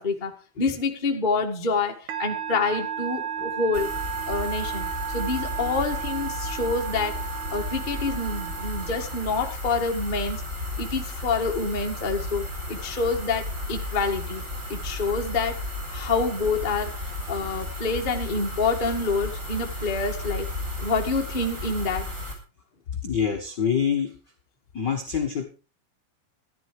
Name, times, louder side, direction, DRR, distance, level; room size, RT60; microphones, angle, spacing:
voice 1, 0.0-3.9 4.3-10.5 10.8-14.4 14.7-20.5 20.8-22.1, left 4 dB, 35° left, 3 dB, 0.7 m, -27 dB
Musical instrument, 2.1-9.7, right 8 dB, 60° right, 2.5 m, -34 dB
sound 1, 3.7-22.3, left 1 dB, 20° right, 4.2 m, -34 dB
voice 2, 23.0-24.2 24.7-25.4, left 7 dB, 70° left, 3 dB, 1.0 m, -25 dB
14.5 x 11.5 x 4.9 m, 0.34 s
omnidirectional pair, 4.3 m